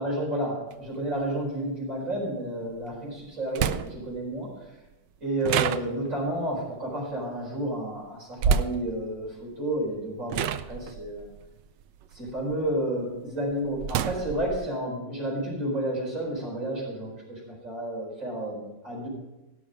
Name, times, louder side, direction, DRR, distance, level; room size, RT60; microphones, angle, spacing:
voice 1, 0.0-4.5 5.2-11.3 12.1-19.1, right 1 dB, 45° right, -4 dB, 5.0 m, -31 dB
sound 1, 0.7-0.8 2.8-2.9 3.5-4.2 5.4-6.3 8.4-8.9 9.8-10.0 10.3-12.7 13.1-14.6, right 7 dB, 90° right, 1.3 m, -28 dB
17.0 x 6.3 x 5.1 m, 1.0 s
omnidirectional pair, 1.9 m